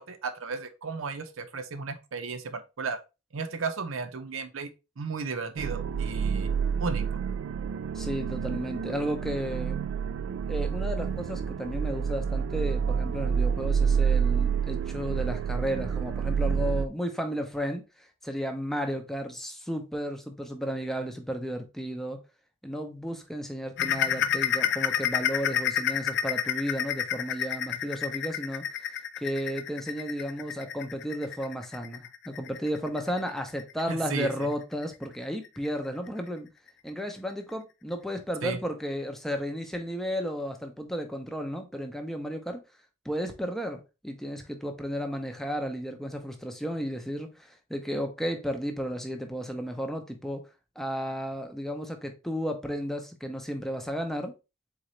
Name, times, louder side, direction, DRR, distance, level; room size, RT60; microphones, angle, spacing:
voice 1, 0.0-3.0 3.3-4.7 5.0-6.5 6.8-7.1 33.9-34.5 38.4-38.6, right 4 dB, 85° right, 0.7 m, -34 dB
sound 1, 5.6-16.9, right 6 dB, 70° right, 0.3 m, -28 dB
voice 2, 7.9-9.8 10.5-22.2 22.6-28.7 29.2-36.5 36.8-42.6 43.0-50.4 50.8-54.3, equal, ahead, 0.6 m, -33 dB
sound 2, 23.8-35.0 35.4-35.7 36.1-36.2 36.7-36.8, left 9 dB, 60° left, 0.3 m, -30 dB
4.1 x 3.8 x 3.1 m
head